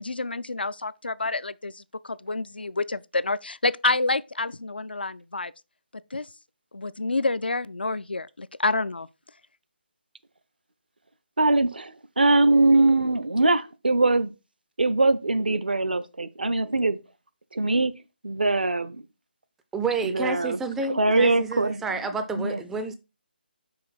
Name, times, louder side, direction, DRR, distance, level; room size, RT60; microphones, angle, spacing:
voice 1, 0.0-5.5 6.1-6.3 6.7-9.1, left 3 dB, 70° left, 0.4 m, -28 dB
voice 2, 11.4-14.3 14.8-17.0 17.5-17.9 18.2-19.0 20.0-20.6 20.9-21.8 22.4-22.6, right 2 dB, 65° right, 0.6 m, -22 dB
voice 3, 19.7-23.0, right 4 dB, 5° right, 0.3 m, -30 dB
5.6 x 4.4 x 4.1 m
figure-of-eight pair, 150°, 5 cm